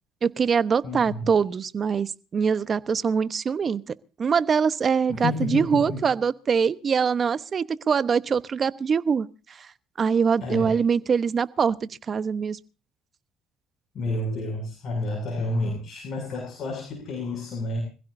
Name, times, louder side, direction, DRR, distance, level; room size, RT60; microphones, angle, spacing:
voice 1, 0.2-3.8 4.2-9.7 10.0-12.6, right 6 dB, 40° right, 1.0 m, -23 dB
voice 2, 0.8-1.3 5.1-6.1 10.4-10.8 13.9-17.8, left 2 dB, 55° left, 7.2 m, -30 dB
25.5 x 16.0 x 2.7 m
supercardioid pair, 75°, 0 cm